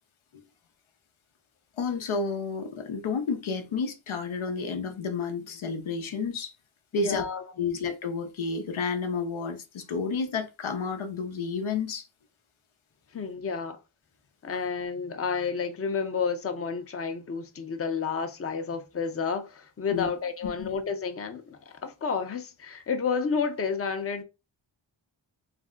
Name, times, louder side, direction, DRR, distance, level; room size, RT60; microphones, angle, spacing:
voice 1, 1.8-6.5 6.9-7.2 7.6-12.1 19.9-20.1 20.6-20.7, left 4 dB, 80° left, 0.6 m, -31 dB
voice 2, 6.9-7.7 13.1-13.8 14.4-24.2, left 5 dB, 30° left, 0.5 m, -31 dB
2.5 x 2.0 x 3.6 m
cardioid pair, 40°, 48 cm